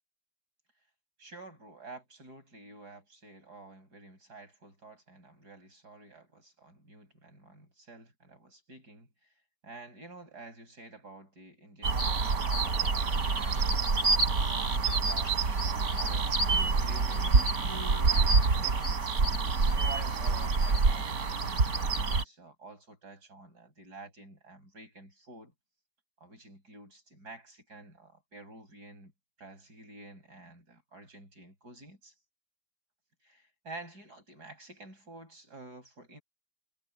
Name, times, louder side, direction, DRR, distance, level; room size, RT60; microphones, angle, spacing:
voice 1, 1.2-9.1 9.6-17.4 18.1-19.2 19.7-25.5 26.2-29.1 29.4-32.1 33.2-36.2, right 2 dB, 85° right, 8.7 m, -50 dB
sound 1, 11.8-22.2, right 4 dB, 70° right, 3.6 m, -27 dB
omnidirectional pair, 1.7 m